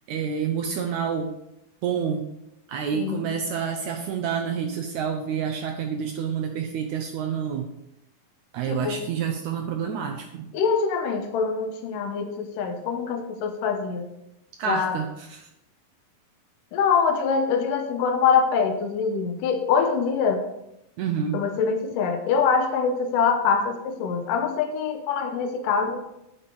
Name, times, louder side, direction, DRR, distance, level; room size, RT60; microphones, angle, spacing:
voice 1, 0.1-1.3 1.8-2.2 2.7-7.7 8.5-10.5 14.6-15.5 21.0-21.4, right 7 dB, 75° right, 3 dB, 1.8 m, -28 dB
voice 2, 2.9-3.3 8.7-9.0 10.5-14.1 14.7-15.0 16.7-20.5 21.3-26.0, left 6 dB, 75° left, 7 dB, 2.4 m, -24 dB
8.7 x 5.8 x 6.8 m, 0.86 s
omnidirectional pair, 4.1 m